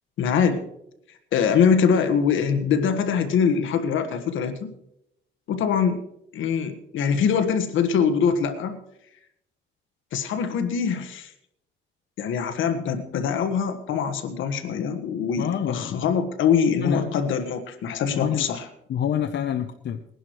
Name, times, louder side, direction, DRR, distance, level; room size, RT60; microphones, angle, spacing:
voice 1, 0.2-0.6 1.3-4.7 5.5-6.0 6.3-8.8 10.1-11.3 12.2-18.7, left 6 dB, 80° left, 8 dB, 1.5 m, -23 dB
voice 2, 15.4-16.0 16.8-17.2 18.1-18.5 18.9-20.0, left 9 dB, 60° left, 7 dB, 0.8 m, -27 dB
21.0 x 11.0 x 3.1 m, 0.78 s
cardioid pair, 90°, 20 cm